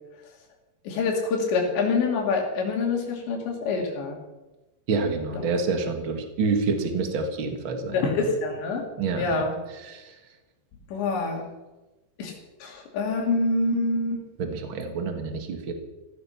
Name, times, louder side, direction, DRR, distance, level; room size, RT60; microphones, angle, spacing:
voice 1, 0.9-4.2 5.3-5.6 7.9-8.9 9.2-9.6 10.9-11.5 12.2-12.3 12.6-14.2, left 3 dB, 70° left, 1 dB, 4.9 m, -26 dB
voice 2, 4.9-8.0 9.0-9.4 9.8-10.0 14.4-15.7, right 4 dB, 70° right, 5 dB, 1.1 m, -27 dB
16.5 x 15.0 x 5.8 m, 1.1 s
omnidirectional pair, 5.4 m